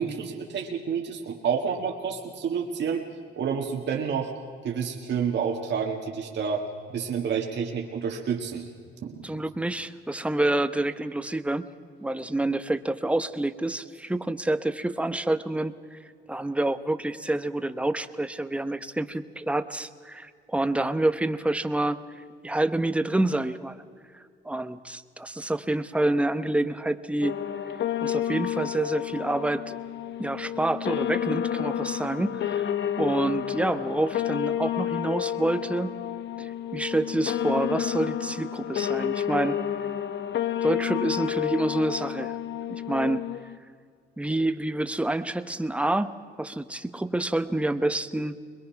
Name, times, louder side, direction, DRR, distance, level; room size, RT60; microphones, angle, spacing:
voice 1, 0.0-3.0 3.4-4.3 4.6-8.7 9.0-9.3, right 6 dB, 60° right, 1 dB, 1.8 m, -29 dB
voice 2, 9.2-11.7 12.0-16.0 16.3-23.8 24.1-27.4 28.0-29.7 30.2-32.7 33.0-36.0 36.4-39.6 40.6-42.4 42.7-43.2 44.2-48.3, right 1 dB, 5° right, 11 dB, 0.9 m, -28 dB
sound 1, 27.2-43.6, left 10 dB, 65° left, 0.9 m, -30 dB
22.0 x 22.0 x 5.8 m, 2.2 s
cardioid pair, 90°, 20 cm